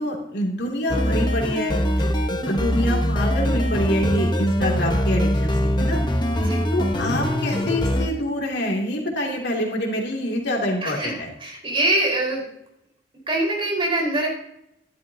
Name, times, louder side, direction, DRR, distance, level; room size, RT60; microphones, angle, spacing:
voice 1, 0.0-1.7 2.0-6.0 6.7-11.3, equal, 70° left, -1 dB, 2.6 m, -26 dB
sound 1, 0.9-8.1, equal, 25° left, 1.0 m, -22 dB
voice 2, 6.3-6.7 10.8-11.1 11.4-12.5 13.3-14.3, right 1 dB, 30° right, -2 dB, 4.5 m, -23 dB
14.0 x 12.0 x 2.8 m, 0.77 s
head